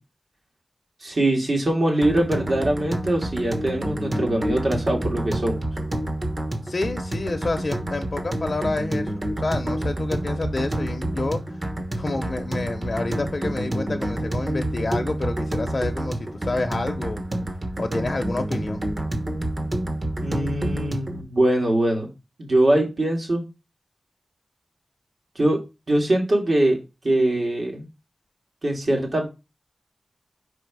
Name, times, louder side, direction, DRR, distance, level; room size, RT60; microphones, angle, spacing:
voice 1, 1.0-5.6 20.2-22.1 22.4-23.4 25.4-25.6 25.9-26.8 27.0-27.9 28.6-29.2, right 1 dB, 65° right, 0 dB, 2.1 m, -22 dB
sound 1, 2.0-21.2, right 1 dB, 40° right, 1.1 m, -28 dB
voice 2, 6.6-11.4 12.0-17.2 17.8-18.8, left 2 dB, 55° left, 4 dB, 0.6 m, -28 dB
5.1 x 4.9 x 4.6 m, 0.27 s
wide cardioid pair, 75°, 0 cm